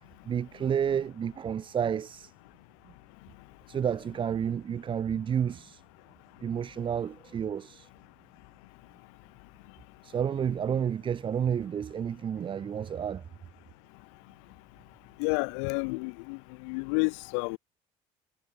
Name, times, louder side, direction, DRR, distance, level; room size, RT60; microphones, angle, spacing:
voice 1, 0.3-2.3 3.7-5.8 6.4-7.9 10.0-13.2, right 8 dB, 35° right, 0.7 m, -30 dB
voice 2, 15.2-16.4 16.7-17.6, left 38 dB, 90° left, 0.4 m, -30 dB
supercardioid pair, 95°, 15 cm